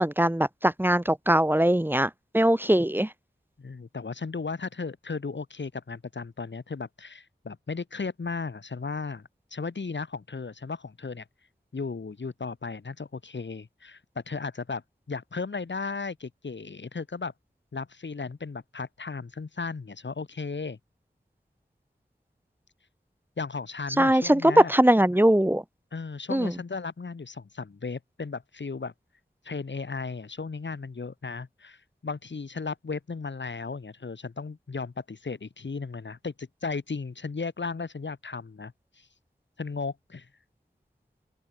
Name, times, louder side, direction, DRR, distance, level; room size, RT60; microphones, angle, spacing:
voice 1, 0.0-3.1 24.0-25.6 26.3-26.5, right 1 dB, 10° right, 1.0 m, -21 dB
voice 2, 3.6-9.2 9.5-11.2 11.7-14.8 15.1-17.3 17.7-20.8 23.4-24.7 25.9-28.9 29.4-39.1 39.6-40.3, left 4 dB, 90° left, 2.3 m, -35 dB
open air
wide cardioid pair, 45°, 18 cm